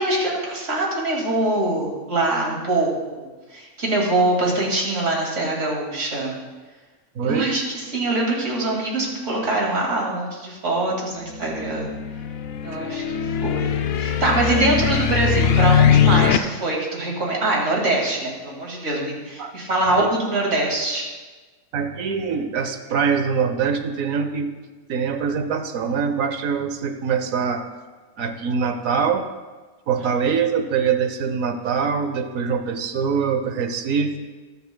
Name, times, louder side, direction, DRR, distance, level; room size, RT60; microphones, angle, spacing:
voice 1, 0.0-6.4 7.2-11.9 12.6-13.0 13.4-21.1, right 2 dB, 65° right, -2 dB, 2.5 m, -23 dB
voice 2, 7.1-7.5 19.4-19.5 19.9-20.1 21.7-24.5 24.9-27.6 28.2-29.2 29.9-34.2, right 6 dB, 85° right, 7 dB, 1.2 m, -23 dB
sound 1, 11.4-16.4, left 8 dB, 65° left, 0.7 m, -20 dB
21.0 x 7.1 x 2.2 m, 1.3 s
omnidirectional pair, 1.4 m